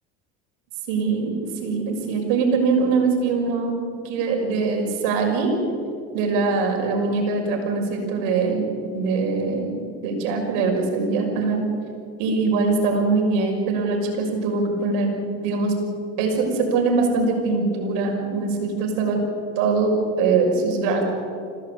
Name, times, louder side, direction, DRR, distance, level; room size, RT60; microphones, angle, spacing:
voice 1, 0.9-1.3 1.6-3.7 4.0-5.5 6.1-8.6 8.9-11.6 12.2-15.7 16.2-19.2 19.6-19.9 20.2-21.0, right 4 dB, 80° right, 2 dB, 6.2 m, -22 dB
26.5 x 17.0 x 8.5 m, 2.4 s
supercardioid pair, 85°, 35 cm